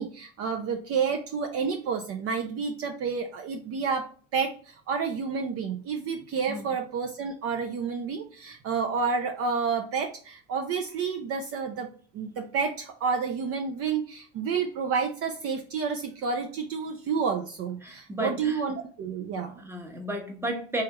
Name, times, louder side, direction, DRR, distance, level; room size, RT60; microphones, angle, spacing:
voice 1, 0.0-4.1 4.3-11.9 12.1-19.6, right 5 dB, 45° right, 4 dB, 0.5 m, -30 dB
voice 2, 17.8-18.6 19.6-20.8, equal, 5° right, 1 dB, 0.9 m, -33 dB
3.4 x 3.3 x 2.9 m, 0.43 s
supercardioid pair, 115°, 34 cm